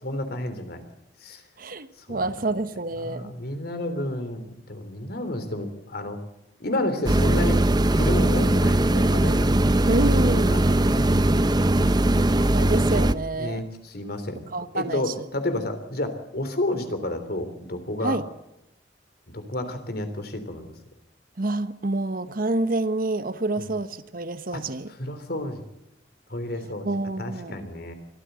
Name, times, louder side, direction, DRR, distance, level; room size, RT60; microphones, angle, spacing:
voice 1, 0.0-0.8 1.2-1.4 2.1-2.3 3.0-6.2 6.6-7.6 8.0-9.9 10.2-10.6 13.3-14.4 14.7-18.2 19.3-20.7 23.6-23.7 24.5-24.6 25.0-25.6 26.3-26.9 27.2-27.9, left 1 dB, 60° left, 9 dB, 3.5 m, -31 dB
voice 2, 1.6-3.3 4.0-4.1 9.9-10.5 12.5-13.6 14.5-15.1 18.0-18.3 21.4-24.9 26.8-27.7, right 2 dB, 55° right, 12 dB, 1.1 m, -27 dB
sound 1, 7.1-13.1, right 1 dB, 25° right, 0.7 m, -20 dB
24.0 x 14.0 x 8.1 m, 0.84 s
head